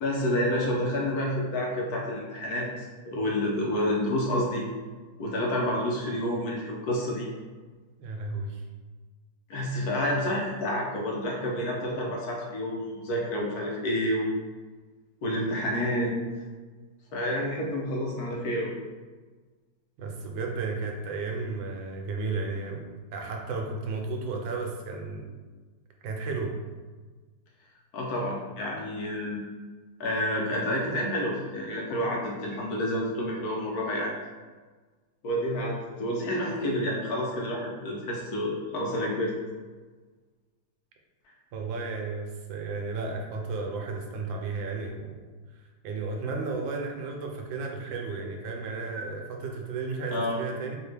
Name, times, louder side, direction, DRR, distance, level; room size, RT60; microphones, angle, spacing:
voice 1, 0.0-4.7 5.2-7.3 9.5-14.3 15.2-16.1 17.1-18.7 27.9-29.4 30.0-34.1 35.2-39.3 50.1-50.4, left 1 dB, 65° left, -2 dB, 1.0 m, -29 dB
voice 2, 8.0-8.6 20.0-22.9 23.1-25.3 26.0-26.6 41.5-45.3 45.8-50.8, right 3 dB, 85° right, 1 dB, 1.4 m, -33 dB
4.2 x 2.8 x 3.3 m, 1.4 s
omnidirectional pair, 2.0 m